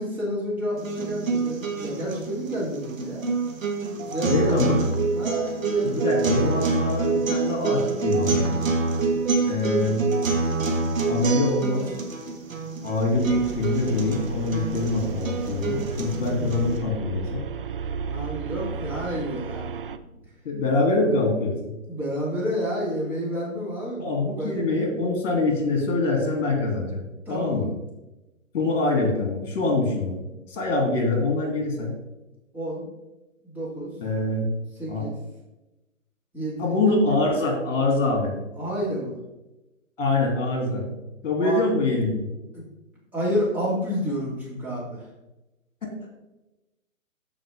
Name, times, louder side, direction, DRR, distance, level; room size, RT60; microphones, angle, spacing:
voice 1, 0.0-3.3 4.1-4.6 5.1-6.1 18.1-19.7 21.9-24.6 27.3-27.7 32.5-32.9 33.4-33.9 34.8-35.1 36.3-36.7 38.6-39.2 41.4-41.6 43.1-45.1, equal, 5° right, -8 dB, 2.6 m, -29 dB
sound 1, 0.8-16.8, right 4 dB, 70° right, 1.8 m, -26 dB
voice 2, 4.3-4.8 5.8-8.5 9.5-10.0 11.1-11.9 12.8-17.4 20.4-21.7 24.0-27.7 28.5-30.1 30.5-31.9 34.0-34.5 34.9-35.0 36.6-38.3 40.0-40.9 41.2-42.3 45.8-45.9, left 2 dB, 45° left, 2 dB, 3.2 m, -24 dB
sound 2, 13.1-20.0, right 5 dB, 45° right, 0.5 m, -34 dB
13.5 x 4.9 x 3.7 m, 0.99 s
figure-of-eight pair, 135°, 41 cm